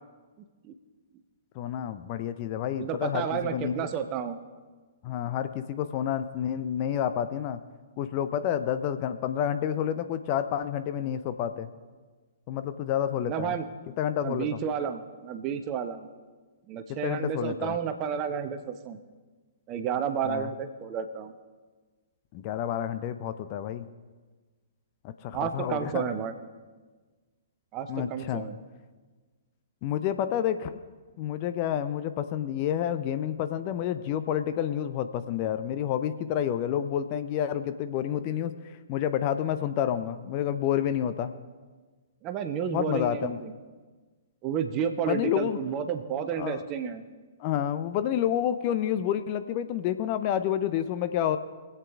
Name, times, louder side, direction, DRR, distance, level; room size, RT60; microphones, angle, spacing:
voice 1, 1.6-3.9 5.0-7.6 8.0-11.7 12.5-13.5 14.0-14.5 16.9-17.8 20.2-20.5 22.3-23.9 25.0-26.1 27.9-28.5 29.8-30.8 31.2-41.3 42.7-43.4 45.1-45.6 46.4-46.6 47.4-51.4, left 10 dB, 35° left, 10 dB, 0.6 m, -29 dB
voice 2, 2.7-4.4 13.2-13.7 14.2-16.1 16.7-19.0 19.7-21.3 25.3-26.3 27.7-28.6 42.2-43.5 44.4-47.0, right 7 dB, 30° right, 9 dB, 0.9 m, -31 dB
22.5 x 8.2 x 3.6 m, 1.4 s
figure-of-eight pair, 115°, 0 cm